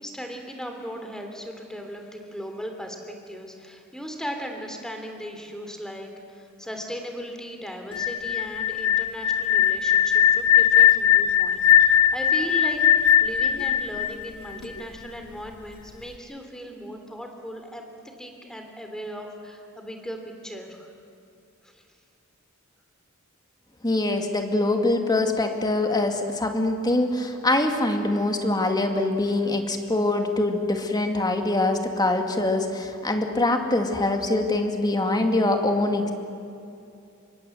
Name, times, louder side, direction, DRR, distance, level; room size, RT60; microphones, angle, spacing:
voice 1, 0.0-12.8 13.2-20.9 21.6-21.8, equal, 5° left, 4 dB, 3.0 m, -37 dB
sound 1, 7.9-14.8, left 10 dB, 80° left, 1.0 m, -19 dB
voice 2, 23.8-36.1, left 2 dB, 20° left, 4 dB, 2.2 m, -24 dB
27.0 x 23.0 x 7.8 m, 2.7 s
head